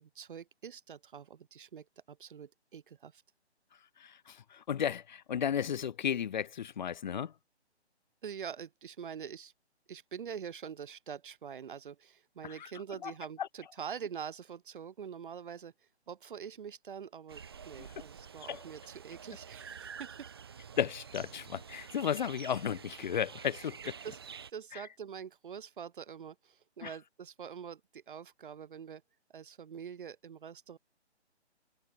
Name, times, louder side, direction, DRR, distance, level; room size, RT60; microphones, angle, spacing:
voice 1, 0.0-3.2 8.2-9.5 9.9-15.7 16.1-20.3 23.6-29.0 29.3-30.8, right 7 dB, 50° right, 1.5 m, -45 dB
voice 2, 4.0-7.3 12.4-12.7 13.0-13.1 13.4-13.5 18.5-18.6 20.8-23.9 24.7-24.8 26.8-26.9, left 8 dB, 40° left, 1.6 m, -34 dB
sound 1, 17.3-24.5, right 7 dB, 20° right, 0.5 m, -48 dB
figure-of-eight pair, 150°, 34 cm